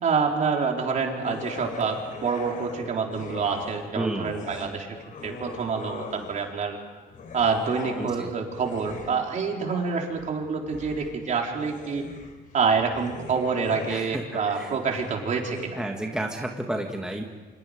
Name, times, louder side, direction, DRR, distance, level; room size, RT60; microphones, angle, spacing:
voice 1, 0.0-4.9 5.2-6.8 7.3-12.0 12.5-15.8, right 5 dB, 45° right, 1 dB, 4.1 m, -27 dB
sound 1, 1.2-3.9 4.2-6.6 7.1-15.7, left 4 dB, 50° left, 4.2 m, -41 dB
voice 2, 4.0-4.4 8.0-8.3 13.9-14.2 14.6-14.7 15.8-17.2, right 1 dB, 5° right, 1 dB, 1.9 m, -31 dB
28.5 x 25.5 x 5.2 m, 1.4 s
cardioid pair, 110°, 17 cm